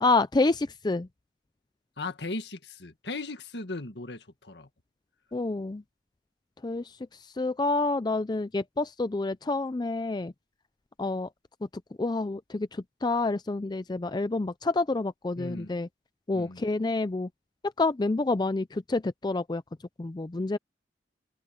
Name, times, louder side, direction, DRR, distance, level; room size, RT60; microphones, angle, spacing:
voice 1, 0.0-1.1 5.3-5.8 6.6-10.3 11.0-11.3 12.0-15.9 16.3-17.3 17.8-19.6 20.0-20.6, left 3 dB, 25° left, 0.4 m, -28 dB
voice 2, 2.0-4.7 15.4-15.7 16.3-16.7, left 2 dB, 65° left, 1.8 m, -37 dB
head